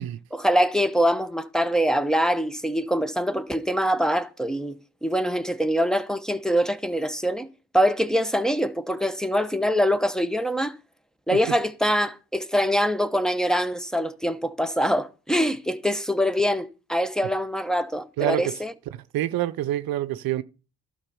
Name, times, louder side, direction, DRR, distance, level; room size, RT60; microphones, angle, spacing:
voice 1, 0.3-4.8 5.0-7.5 7.7-10.7 11.3-18.7, equal, ahead, 1.0 m, -24 dB
voice 2, 18.2-18.6 19.1-20.4, right 13 dB, 75° right, 0.7 m, -26 dB
12.0 x 5.4 x 6.9 m
supercardioid pair, 50°, 35 cm